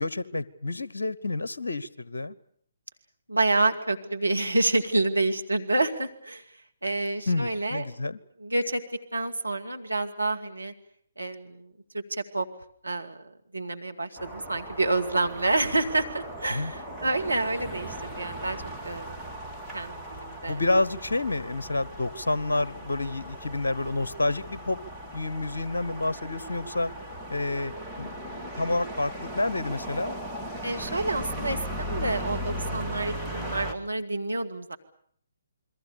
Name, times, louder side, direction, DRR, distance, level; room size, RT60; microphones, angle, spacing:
voice 1, 0.0-2.3 7.3-8.2 16.5-16.7 20.5-24.8 25.1-26.9 27.3-27.7 28.0-28.1 28.6-30.2, left 2 dB, 65° left, 20 dB, 1.0 m, -29 dB
voice 2, 3.3-7.8 8.4-8.8 9.1-10.7 11.2-12.5 12.8-18.6 18.8-19.2 19.7-20.6 28.0-28.5 30.6-34.8, right 2 dB, 80° right, 6 dB, 2.5 m, -28 dB
sound 1, 14.2-33.7, equal, 5° left, 2.1 m, -38 dB
28.5 x 22.0 x 7.0 m, 0.62 s
figure-of-eight pair, 135°, 0 cm